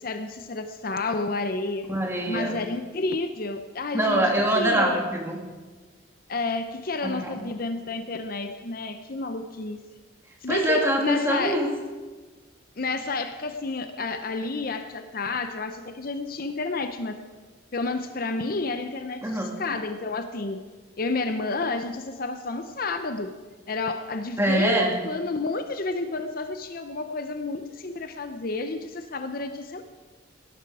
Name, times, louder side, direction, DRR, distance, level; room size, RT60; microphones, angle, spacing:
voice 1, 0.0-1.9 2.3-4.2 4.5-5.0 6.3-9.8 10.4-11.6 12.8-17.3 17.7-20.6 21.0-23.3 23.7-29.8, left 3 dB, 50° left, 8 dB, 0.7 m, -30 dB
voice 2, 1.9-2.6 3.9-5.4 7.0-7.5 10.5-11.7 19.2-19.5 24.4-25.0, right 1 dB, 10° right, 0 dB, 2.2 m, -24 dB
18.5 x 12.0 x 4.8 m, 1.3 s
head